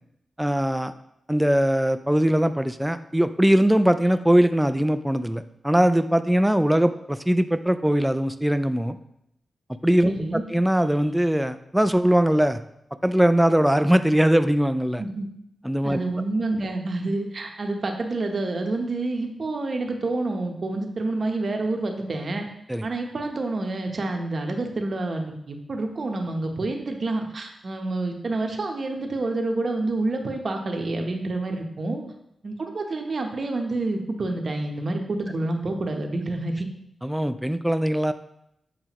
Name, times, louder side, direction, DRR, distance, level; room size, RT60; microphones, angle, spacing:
voice 1, 0.4-0.9 1.3-9.0 9.8-10.1 10.5-12.6 13.0-15.0 15.6-16.0 22.7-22.9 37.0-38.1, right 1 dB, 5° right, 10 dB, 0.4 m, -21 dB
voice 2, 10.0-10.4 15.0-15.3 15.8-22.4 22.8-32.0 32.4-36.7, right 2 dB, 55° right, 3 dB, 0.9 m, -28 dB
7.5 x 4.8 x 3.0 m, 0.79 s
cardioid pair, 80°, 0 cm